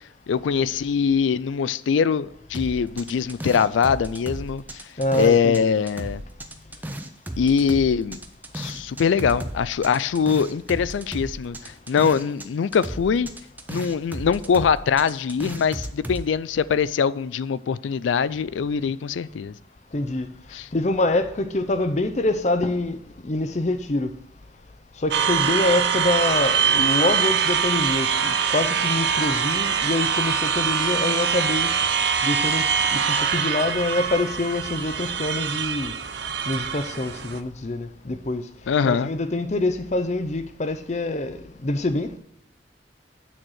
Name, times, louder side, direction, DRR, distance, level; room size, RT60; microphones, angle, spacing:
voice 1, 0.3-4.8 5.1-6.2 7.4-8.2 8.5-13.3 13.7-19.5 20.5-20.7 38.7-39.1, left 6 dB, 85° left, 0.4 m, -22 dB
sound 1, 2.5-5.6 5.9-12.5 12.7-16.2, right 1 dB, 10° right, 0.5 m, -35 dB
voice 2, 5.0-5.7 19.9-20.3 20.7-23.0 23.2-24.1 25.0-31.8 32.2-36.0 36.5-38.5 38.8-42.2, left 2 dB, 40° left, 0.6 m, -25 dB
sound 2, 25.1-37.4, right 7 dB, 65° right, 0.7 m, -23 dB
8.9 x 4.5 x 6.4 m
head